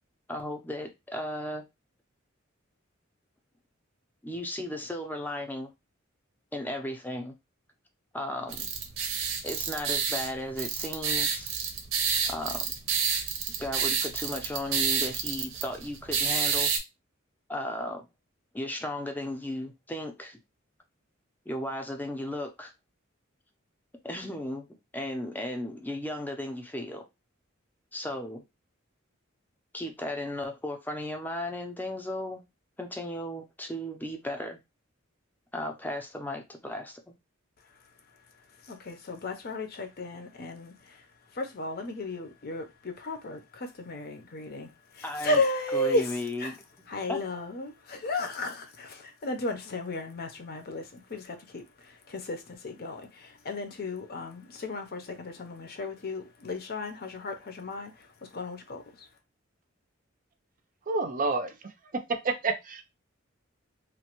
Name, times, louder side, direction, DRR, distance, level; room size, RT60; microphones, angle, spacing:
voice 1, 0.3-1.6 4.2-5.7 6.5-7.3 8.1-8.7 9.4-11.5 12.3-12.7 13.6-16.7 17.5-18.1 18.5-20.4 21.5-22.7 24.0-24.7 24.9-27.0 27.9-28.4 29.7-32.4 32.8-34.6 35.5-37.1 45.0-45.4 45.7-46.6 47.1-47.2, left 1 dB, 10° left, 0.5 m, -35 dB
sound 1, 8.5-16.8, right 6 dB, 80° right, 0.7 m, -29 dB
voice 2, 37.6-46.6 46.9-59.2, left 2 dB, 50° left, 0.6 m, -34 dB
voice 3, 60.9-61.5 62.2-62.8, right 3 dB, 40° right, 0.4 m, -28 dB
3.0 x 2.1 x 2.9 m
head